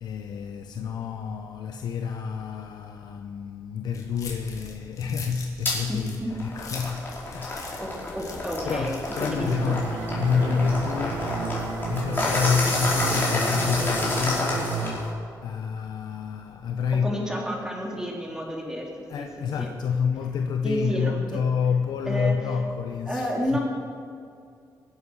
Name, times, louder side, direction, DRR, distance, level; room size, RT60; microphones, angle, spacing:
voice 1, 0.0-7.6 8.7-11.3 11.8-15.1 15.4-17.2 19.1-23.6, left 6 dB, 80° left, 5 dB, 0.8 m, -28 dB
sound 1, 3.9-9.9, left 4 dB, 50° left, 3.0 m, -43 dB
sound 2, 5.6-5.8 6.3-15.1, left 2 dB, 30° left, 5.1 m, -29 dB
voice 2, 5.9-6.4 7.5-8.9 9.2-9.7 16.9-18.9 19.2-19.7 20.6-21.4 22.0-22.3 23.1-23.6, equal, 10° right, -1 dB, 3.3 m, -31 dB
sound 3, 9.4-15.0, right 5 dB, 80° right, 1.2 m, -32 dB
23.0 x 8.7 x 6.4 m, 2.3 s
cardioid pair, 115°, 7 cm